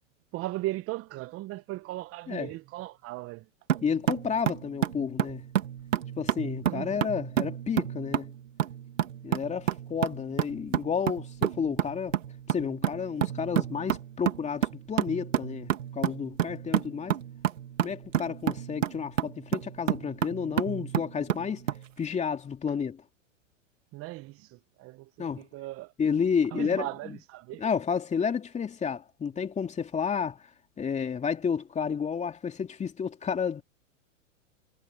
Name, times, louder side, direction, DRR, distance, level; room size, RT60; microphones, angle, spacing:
voice 1, 0.3-3.4 6.6-7.1 23.9-25.9 26.5-27.6, right 18 dB, 35° right, 1.2 m, -37 dB
sound 1, 3.7-21.9, right 10 dB, 80° right, 2.5 m, -30 dB
voice 2, 3.8-5.4 6.2-8.3 9.2-12.2 12.5-17.2 17.8-21.7 22.0-23.0 25.2-25.5 26.0-27.2 27.6-30.4 30.8-33.6, left 6 dB, 20° left, 2.8 m, -31 dB
hypercardioid pair, 115°, 38 cm